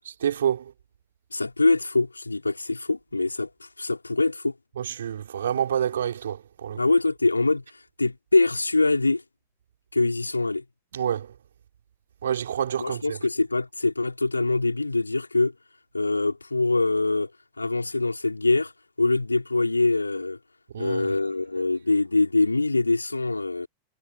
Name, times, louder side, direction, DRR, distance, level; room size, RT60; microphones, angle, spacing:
voice 1, 0.2-0.7 4.8-6.8 10.9-11.3 12.2-13.2 20.7-21.1, right 9 dB, 65° right, 3.9 m, -28 dB
voice 2, 1.3-4.5 6.8-7.6 8.0-9.2 9.9-10.6 12.8-15.5 15.9-17.3 17.6-18.7 19.0-20.4 20.8-23.7, left 3 dB, 80° left, 3.4 m, -24 dB
figure-of-eight pair, 90°, 0 cm